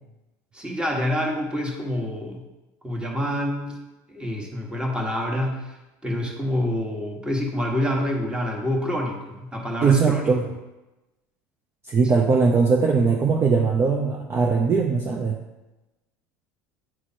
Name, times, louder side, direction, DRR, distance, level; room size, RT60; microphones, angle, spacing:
voice 1, 0.5-2.4 2.8-3.8 4.1-5.7 6.0-10.3, left 1 dB, 10° right, 0 dB, 1.4 m, -27 dB
voice 2, 9.8-10.4 11.8-15.4, right 5 dB, 30° right, 1 dB, 0.7 m, -20 dB
8.8 x 3.1 x 4.3 m, 1.0 s
supercardioid pair, 95°, 9 cm